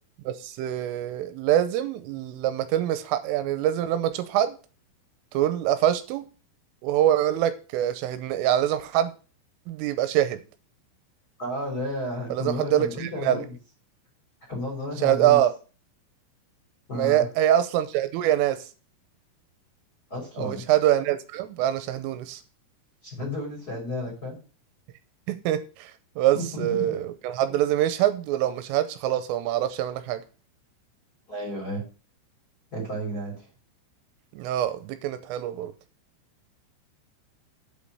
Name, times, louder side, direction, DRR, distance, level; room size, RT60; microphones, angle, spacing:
voice 1, 0.3-4.6 5.3-6.2 6.8-9.1 9.7-10.4 12.3-13.4 15.0-15.5 16.9-18.7 20.4-22.4 25.3-30.2 34.3-35.7, right 12 dB, 85° right, 11 dB, 3.2 m, -24 dB
voice 2, 11.4-13.5 14.5-15.4 16.9-17.3 20.1-20.6 23.0-24.4 26.3-27.0 31.3-31.8 32.7-33.5, left 1 dB, 25° left, -3 dB, 2.7 m, -32 dB
8.1 x 5.3 x 6.9 m, 0.35 s
omnidirectional pair, 5.9 m